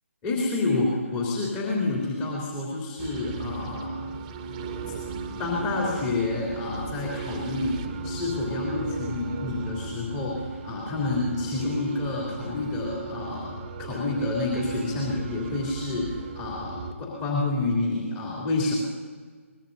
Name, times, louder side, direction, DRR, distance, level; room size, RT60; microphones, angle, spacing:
voice 1, 0.2-3.9 5.4-18.7, left 2 dB, 20° left, -4 dB, 3.1 m, -28 dB
sound 1, 3.0-16.9, right 4 dB, 25° right, 1.4 m, -36 dB
23.0 x 20.5 x 2.7 m, 1.5 s
figure-of-eight pair, 145°, 8 cm